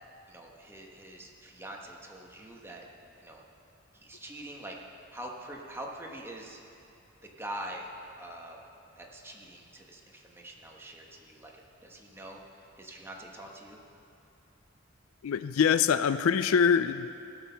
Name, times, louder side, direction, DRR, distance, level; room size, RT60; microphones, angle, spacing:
voice 1, 0.3-2.8 3.2-3.4 3.9-4.8 5.1-6.6 7.2-8.6 9.0-13.8, right 1 dB, 10° right, -1 dB, 1.2 m, -44 dB
voice 2, 15.2-17.1, left 7 dB, 85° left, 13 dB, 0.4 m, -24 dB
17.5 x 6.4 x 5.7 m, 2.6 s
head